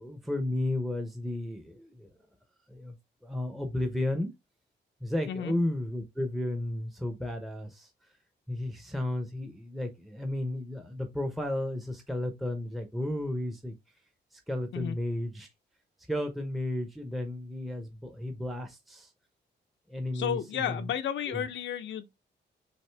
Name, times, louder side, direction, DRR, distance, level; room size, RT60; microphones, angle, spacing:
voice 1, 0.0-2.1 2.7-3.0 3.2-4.3 5.0-7.9 8.5-13.7 14.3-15.5 16.1-19.1 19.9-20.9 21.3-21.5, left 1 dB, ahead, 0.7 m, -33 dB
voice 2, 20.1-22.1, left 9 dB, 85° left, 0.7 m, -32 dB
6.2 x 2.6 x 3.3 m
cardioid pair, 125°, 19 cm